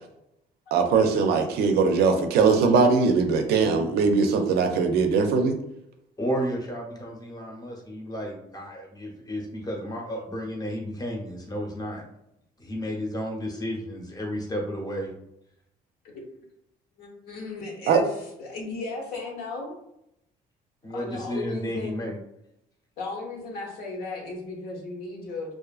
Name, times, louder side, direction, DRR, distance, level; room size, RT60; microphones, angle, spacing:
voice 1, 0.7-5.6 17.9-18.0, right 5 dB, 70° right, 5 dB, 0.4 m, -21 dB
voice 2, 6.2-12.0 12.6-15.1 20.8-22.2, equal, 20° left, -1 dB, 0.8 m, -32 dB
voice 3, 17.0-18.1 18.4-19.8 20.9-22.1 23.0-25.6, left 3 dB, 65° left, 0 dB, 0.8 m, -35 dB
2.5 x 2.4 x 2.3 m, 0.80 s
cardioid pair, 110°, 17 cm